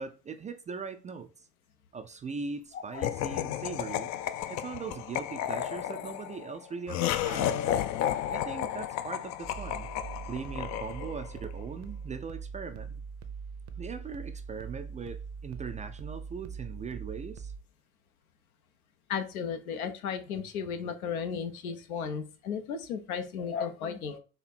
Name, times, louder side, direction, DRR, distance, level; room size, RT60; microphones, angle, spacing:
voice 1, 0.0-1.5 1.9-4.1 4.5-7.7 8.3-9.9 10.3-13.0 13.8-17.5, right 5 dB, 20° right, 0.4 m, -40 dB
voice 2, 2.7-3.1 19.1-24.2, left 7 dB, 80° left, 1.0 m, -35 dB
Laughter, 3.0-11.4, left 11 dB, 40° left, 0.5 m, -32 dB
sound 1, 9.4-17.6, right 5 dB, 55° right, 0.8 m, -42 dB
4.4 x 2.8 x 4.2 m
hypercardioid pair, 80°, 43 cm